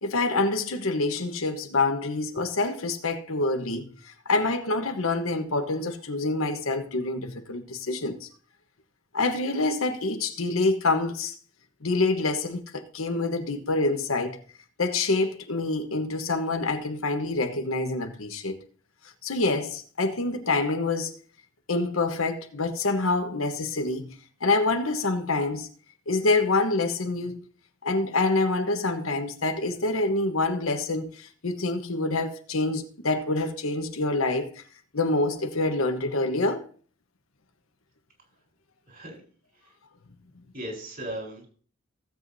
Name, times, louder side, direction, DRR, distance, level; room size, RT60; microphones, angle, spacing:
voice 1, 0.0-8.3 9.1-11.3 11.8-14.4 14.8-18.6 19.2-21.1 21.7-24.1 24.4-25.7 26.1-27.5 27.8-34.6 34.9-36.7, left 3 dB, 85° left, 1.2 m, -26 dB
voice 2, 38.9-39.2 39.5-39.8 40.5-41.5, right 1 dB, 50° right, 4.2 m, -37 dB
16.0 x 7.8 x 2.8 m
head